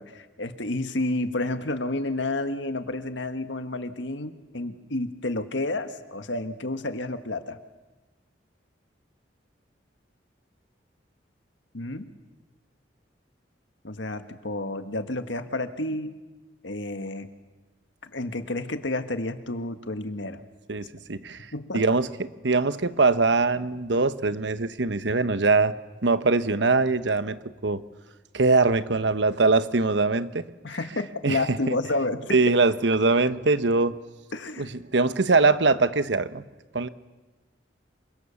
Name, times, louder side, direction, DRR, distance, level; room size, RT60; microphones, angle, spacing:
voice 1, 0.0-7.6 11.7-12.1 13.8-16.2 16.6-17.3 18.0-20.4 21.5-21.8 30.6-32.4 34.3-34.7, left 2 dB, 80° left, 8 dB, 1.7 m, -30 dB
voice 2, 20.7-22.1 22.4-25.7 26.0-27.8 28.3-30.4 31.2-31.8 32.3-34.0 34.6-36.5 36.7-36.9, right 3 dB, 75° right, 12 dB, 1.1 m, -22 dB
27.5 x 24.5 x 7.1 m, 1.2 s
head